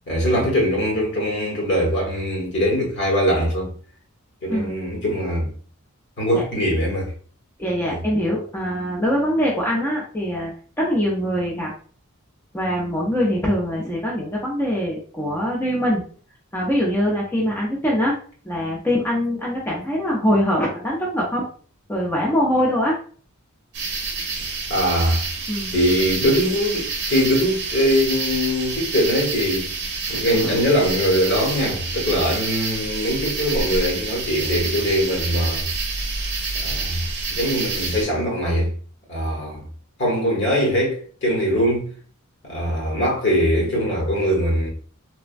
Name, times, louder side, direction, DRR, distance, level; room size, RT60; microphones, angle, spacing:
voice 1, 0.1-3.7 4.4-5.5 6.2-7.1 7.9-8.0 24.7-25.2 25.7-29.7 30.1-35.7 36.5-37.0 37.3-38.7 39.1-39.6 40.0-41.9 42.4-44.7, equal, 55° left, 1.1 m, -22 dB
voice 2, 7.6-10.5 10.8-11.7 12.5-16.0 16.5-18.2 18.4-21.4 21.9-23.0 25.5-25.7 30.1-30.6, equal, 10° left, 0.5 m, -23 dB
sound 1, 23.7-38.0, right 4 dB, 50° right, 0.6 m, -28 dB
3.3 x 2.1 x 2.4 m
head